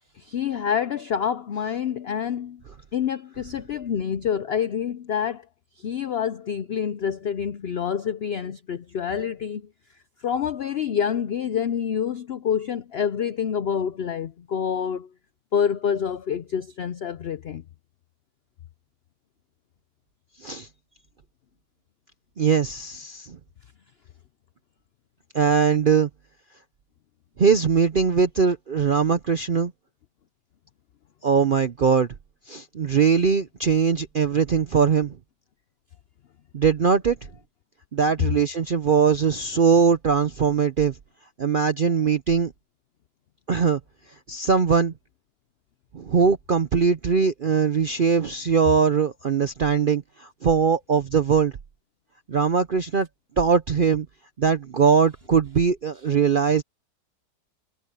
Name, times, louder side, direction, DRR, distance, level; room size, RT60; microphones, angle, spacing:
voice 1, 0.2-2.6 2.9-5.4 5.8-9.6 10.2-15.1 15.5-17.6, left 8 dB, 75° left, 0.5 m, -27 dB
voice 2, 22.4-23.3 25.3-26.1 27.4-29.7 31.2-32.1 32.5-35.1 36.5-37.2 37.9-40.9 41.4-42.5 43.5-43.8 44.3-44.9 45.9-50.0 50.4-51.5 52.3-53.1 53.4-54.1 54.4-56.6, right 6 dB, 60° right, 0.5 m, -21 dB
omnidirectional pair, 1.8 m